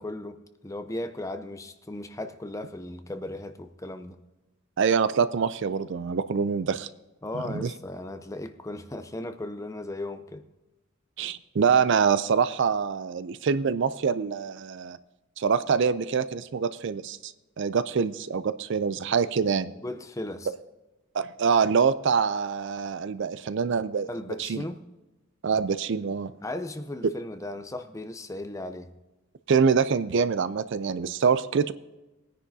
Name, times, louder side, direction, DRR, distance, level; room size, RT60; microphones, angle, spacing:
voice 1, 0.0-4.2 7.2-10.5 19.8-20.5 24.1-24.9 26.4-29.0, left 1 dB, 15° left, 0.5 m, -36 dB
voice 2, 4.8-6.9 7.3-7.7 11.2-15.0 15.4-19.7 21.1-24.1 24.4-24.6 25.4-26.3 29.5-31.7, right 6 dB, 55° right, 0.4 m, -25 dB
19.5 x 9.9 x 2.7 m
head